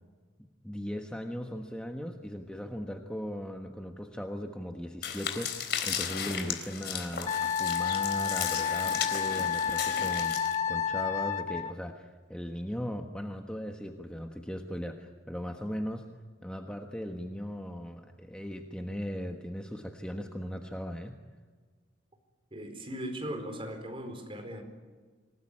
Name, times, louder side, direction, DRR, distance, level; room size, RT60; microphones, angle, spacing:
voice 1, 0.6-16.1 16.4-21.2, equal, 5° left, 3 dB, 1.3 m, -38 dB
sound 1, 5.0-10.6, left 7 dB, 60° left, 4.0 m, -35 dB
Wind instrument woodwind instrument, 7.3-11.7, left 7 dB, 40° left, 1.6 m, -30 dB
voice 2, 22.5-24.6, equal, 30° right, 5 dB, 4.6 m, -38 dB
26.5 x 18.5 x 9.9 m, 1.5 s
head